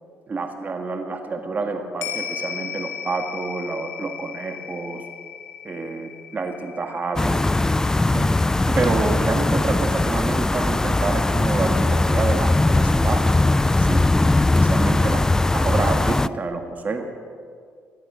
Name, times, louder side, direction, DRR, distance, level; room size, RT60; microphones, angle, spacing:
voice 1, 0.3-5.0 5.6-7.4 8.1-8.4 8.6-13.3 13.6-14.0 14.5-15.2 15.5-17.1, right 3 dB, 35° right, 5 dB, 1.6 m, -28 dB
sound 1, 2.0-10.6 10.9-11.0, left 8 dB, 85° left, 1.9 m, -37 dB
sound 2, 7.2-16.3, left 2 dB, 10° left, 0.4 m, -20 dB
18.5 x 12.5 x 6.1 m, 2.1 s
cardioid pair, 80°, 5 cm